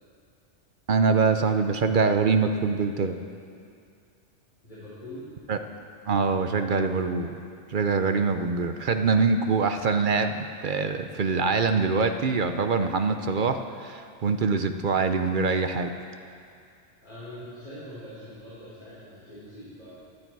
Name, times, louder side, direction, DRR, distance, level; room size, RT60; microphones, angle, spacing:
voice 1, 0.9-3.1 5.5-5.6 6.1-7.3 7.7-15.9, right 4 dB, 50° right, 7 dB, 0.8 m, -24 dB
voice 2, 4.6-5.3 17.0-19.9, left 1 dB, 40° left, -13 dB, 4.8 m, -43 dB
18.0 x 11.5 x 4.7 m, 2.4 s
omnidirectional pair, 1.2 m